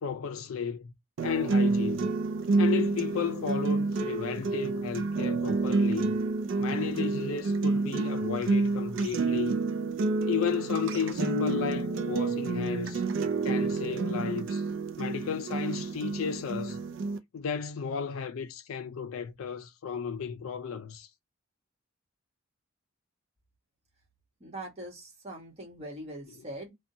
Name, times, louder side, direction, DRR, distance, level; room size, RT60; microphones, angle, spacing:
voice 1, 0.0-0.9 1.2-2.1 2.6-6.1 6.6-9.6 10.3-13.0 13.4-14.6 15.0-16.8 17.3-21.1, left 6 dB, 80° left, 0.4 m, -33 dB
sound 1, 1.2-17.2, right 3 dB, 60° right, 0.4 m, -29 dB
voice 2, 24.4-26.7, right 1 dB, 30° right, 1.2 m, -42 dB
2.6 x 2.2 x 2.6 m
head